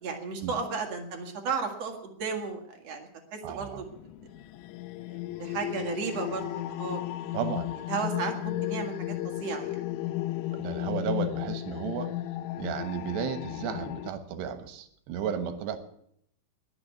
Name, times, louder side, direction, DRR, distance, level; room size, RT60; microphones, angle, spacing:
voice 1, 0.0-3.9 5.4-7.0 7.9-9.8, right 5 dB, 45° right, 3 dB, 2.5 m, -34 dB
voice 2, 3.4-3.8 7.3-7.7 10.5-12.1 12.6-15.8, right 8 dB, 75° right, 10 dB, 3.3 m, -33 dB
sound 1, 3.9-14.1, left 15 dB, 85° left, 3.1 m, -34 dB
21.0 x 7.1 x 8.1 m, 0.68 s
omnidirectional pair, 5.2 m